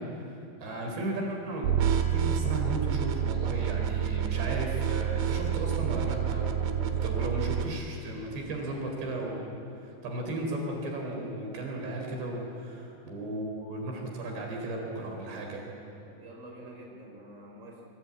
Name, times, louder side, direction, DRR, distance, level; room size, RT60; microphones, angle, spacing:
voice 1, 0.0-9.4 9.8-15.6, right 1 dB, 65° right, 1 dB, 5.9 m, -35 dB
sound 1, 1.6-7.6, right 9 dB, 90° right, 4.0 m, -28 dB
voice 2, 6.8-7.8 16.0-17.9, right 1 dB, 15° right, 0 dB, 4.6 m, -48 dB
28.0 x 23.5 x 8.7 m, 2.7 s
omnidirectional pair, 5.3 m